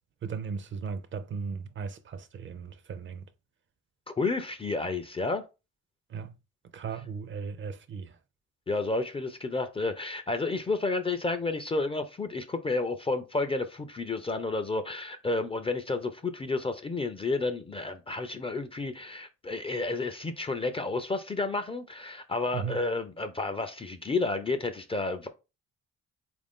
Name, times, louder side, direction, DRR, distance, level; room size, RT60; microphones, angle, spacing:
voice 1, 0.2-3.2 6.1-6.4 6.7-8.2 22.5-22.8, right 6 dB, 40° right, 0.4 m, -37 dB
voice 2, 4.1-5.4 8.7-25.3, left 3 dB, 20° left, 0.4 m, -31 dB
3.5 x 2.5 x 3.5 m
cardioid pair, 90°, 30 cm